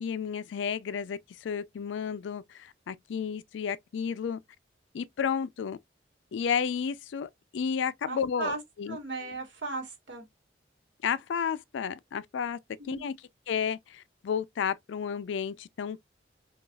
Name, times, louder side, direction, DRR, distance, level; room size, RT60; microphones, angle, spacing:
voice 1, 0.0-4.4 4.9-5.8 6.3-8.5 8.8-9.0 11.0-12.6 12.9-13.2 13.5-16.0, left 7 dB, 75° left, 0.3 m, -32 dB
voice 2, 8.0-8.6 8.9-10.3 12.8-13.1, right 3 dB, 75° right, 1.4 m, -36 dB
3.9 x 2.3 x 2.2 m
head